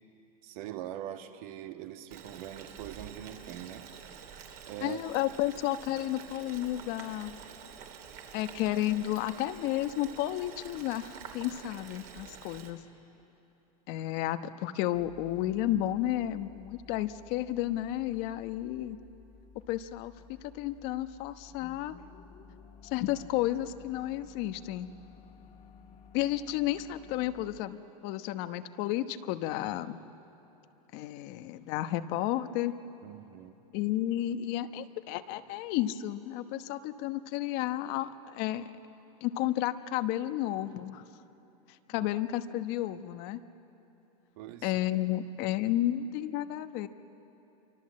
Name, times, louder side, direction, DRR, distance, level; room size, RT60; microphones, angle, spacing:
voice 1, 0.4-3.9 4.7-5.0 33.0-33.5 41.9-42.1 44.4-44.8, right 11 dB, 65° right, 6 dB, 1.9 m, -42 dB
Boiling, 2.1-12.7, right 7 dB, 45° right, 3.4 m, -48 dB
voice 2, 4.8-7.3 8.3-12.8 13.9-19.0 19.7-21.9 22.8-24.9 26.1-30.0 30.9-32.7 33.7-38.7 39.2-41.0 41.9-43.4 44.6-46.9, left 13 dB, 55° left, 10 dB, 1.1 m, -32 dB
sound 1, 14.9-27.6, left 5 dB, 35° left, 1.7 m, -55 dB
27.5 x 24.5 x 7.7 m, 3.0 s
supercardioid pair, 125°, 20 cm